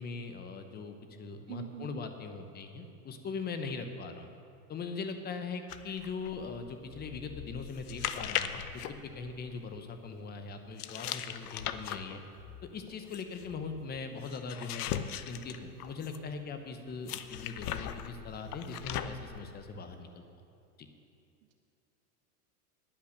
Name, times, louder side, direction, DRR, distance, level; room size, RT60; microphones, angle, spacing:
voice 1, 0.0-4.3 4.7-12.2 12.7-14.9 15.3-20.1 20.8-20.9, left 4 dB, 20° left, 7 dB, 0.9 m, -40 dB
voice 2, 1.5-2.0, right 11 dB, 55° right, 6 dB, 0.7 m, -42 dB
sound 1, 5.7-9.8 10.8-16.3 17.1-19.4, left 10 dB, 80° left, 0.7 m, -39 dB
10.5 x 8.8 x 6.5 m, 2.6 s
supercardioid pair, 125°, 45 cm